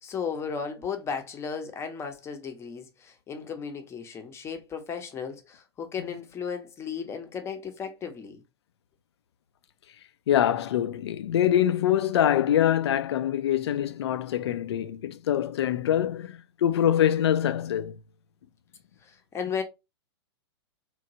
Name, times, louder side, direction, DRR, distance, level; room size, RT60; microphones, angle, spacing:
voice 1, 0.0-8.4 19.0-19.6, left 6 dB, 20° left, 0.6 m, -35 dB
voice 2, 10.3-18.0, left 10 dB, 70° left, 0.4 m, -24 dB
2.9 x 2.2 x 2.7 m
hypercardioid pair, 105°, 14 cm